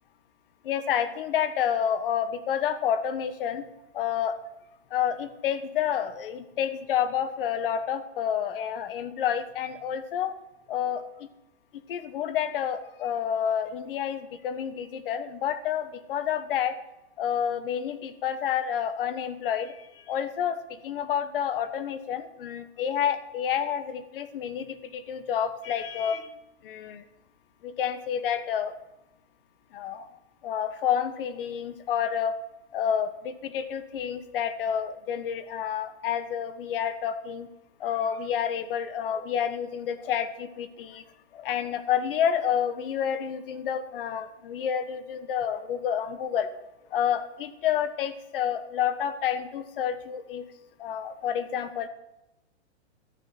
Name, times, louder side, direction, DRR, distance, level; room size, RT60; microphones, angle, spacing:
voice 1, 0.6-3.7 3.9-4.4 4.9-10.3 10.7-11.3 11.9-16.8 17.2-26.3 26.6-27.0 27.6-28.7 29.7-30.1 30.4-32.3 32.7-37.5 37.8-41.0 41.3-46.5 46.9-50.5 50.8-51.9, left 8 dB, 50° left, 12 dB, 1.3 m, -29 dB
13.0 x 9.1 x 5.9 m, 0.94 s
hypercardioid pair, 155°, 35 cm